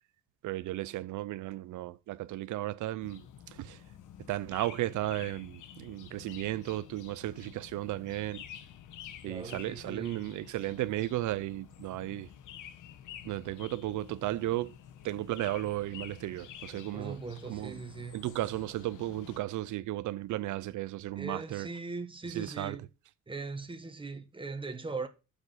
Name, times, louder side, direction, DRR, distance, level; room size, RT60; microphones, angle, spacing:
voice 1, 0.4-3.2 3.5-3.8 4.3-8.4 9.2-12.3 13.2-14.7 15.0-17.2 17.5-17.8 18.1-21.7 22.2-22.8, right 16 dB, 75° right, 0.6 m, -35 dB
sound 1, 3.0-19.4, left 9 dB, 85° left, 1.3 m, -50 dB
voice 2, 9.3-10.2 16.9-18.2 21.2-22.9 23.3-25.1, right 4 dB, 15° right, 1.7 m, -40 dB
7.3 x 6.5 x 6.4 m
cardioid pair, 90°, 30 cm